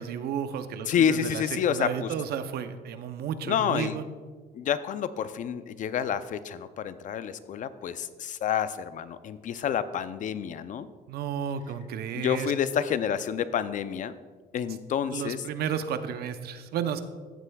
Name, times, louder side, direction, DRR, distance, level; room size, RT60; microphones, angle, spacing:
voice 1, 0.0-1.4 1.7-4.0 11.1-12.5 15.1-17.0, right 8 dB, 70° right, 10 dB, 0.7 m, -32 dB
voice 2, 0.9-2.1 3.4-4.0 4.5-10.9 12.1-14.1 14.5-15.4, left 8 dB, 50° left, 13 dB, 0.5 m, -29 dB
14.5 x 7.9 x 2.3 m, 1.5 s
cardioid pair, 110°, 17 cm